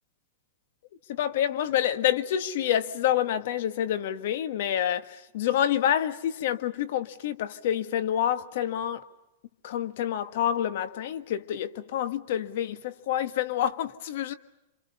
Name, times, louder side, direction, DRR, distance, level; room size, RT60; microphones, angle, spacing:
voice 1, 1.1-9.0 9.6-14.3, left 10 dB, 60° left, 1.6 m, -28 dB
28.5 x 27.0 x 5.6 m
supercardioid pair, 150°, 0 cm